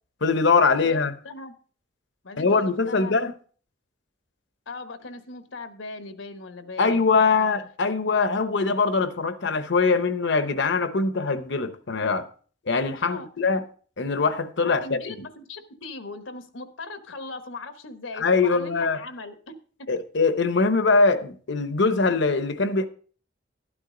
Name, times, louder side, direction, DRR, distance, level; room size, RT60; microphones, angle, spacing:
voice 1, 0.2-1.1 2.4-3.3 6.8-12.3 12.7-13.6 14.0-15.1 18.2-19.0 19.9-22.9, left 4 dB, 65° left, 0.9 m, -22 dB
voice 2, 2.2-3.1 4.7-7.5 13.0-13.3 14.6-19.5, left 3 dB, 80° left, 1.2 m, -39 dB
12.5 x 9.8 x 3.8 m
head